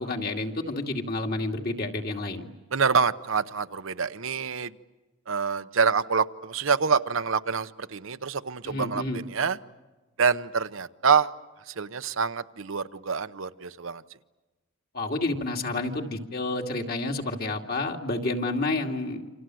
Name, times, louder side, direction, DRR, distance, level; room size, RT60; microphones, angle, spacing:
voice 1, 0.0-2.5 8.6-9.2 14.9-19.2, left 2 dB, 45° left, 2 dB, 2.5 m, -30 dB
voice 2, 2.7-4.7 5.3-9.6 10.2-11.3 11.7-14.0, right 5 dB, 65° right, 11 dB, 0.8 m, -26 dB
29.0 x 26.5 x 7.8 m, 1.2 s
head